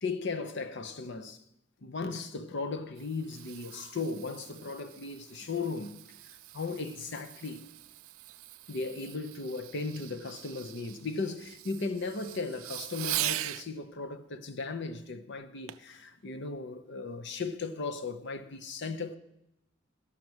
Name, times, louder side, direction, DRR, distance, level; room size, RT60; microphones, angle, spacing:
voice 1, 0.0-1.4 1.8-6.0 6.2-7.7 8.7-19.1, left 3 dB, 60° left, 0.8 m, -36 dB
Fireworks, 2.7-13.7 15.7-16.0 16.5-16.6, right 15 dB, 85° right, 0.5 m, -41 dB
12.0 x 5.9 x 7.9 m
head